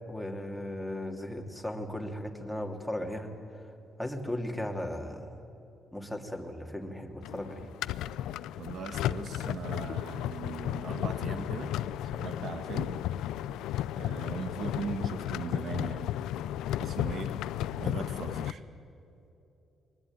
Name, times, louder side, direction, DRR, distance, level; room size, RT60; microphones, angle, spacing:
voice 1, 0.1-3.3 4.0-5.3 5.9-7.7 11.9-12.0, left 1 dB, 5° left, 2 dB, 2.7 m, -36 dB
sound 1, 7.2-18.5, left 12 dB, 90° left, 0.5 m, -34 dB
voice 2, 8.6-11.8 12.1-13.0 14.0-16.2 16.8-17.4 17.8-18.6, right 5 dB, 60° right, 8 dB, 1.9 m, -39 dB
22.5 x 20.0 x 9.1 m, 2.9 s
cardioid pair, 90°, 0 cm